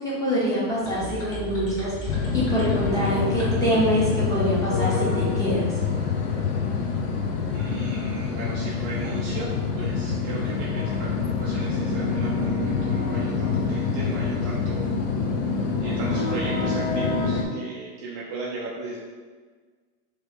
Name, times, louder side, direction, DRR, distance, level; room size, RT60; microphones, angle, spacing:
voice 1, 0.0-5.6, equal, 5° left, -8 dB, 0.7 m, -25 dB
sound 1, 0.8-4.7, equal, 25° left, 1.2 m, -36 dB
sound 2, 2.1-17.5, left 5 dB, 45° left, 0.5 m, -26 dB
voice 2, 7.5-15.1 15.8-19.0, right 3 dB, 35° right, -5 dB, 0.4 m, -36 dB
3.0 x 2.7 x 3.3 m, 1.5 s
supercardioid pair, 130°, 50 cm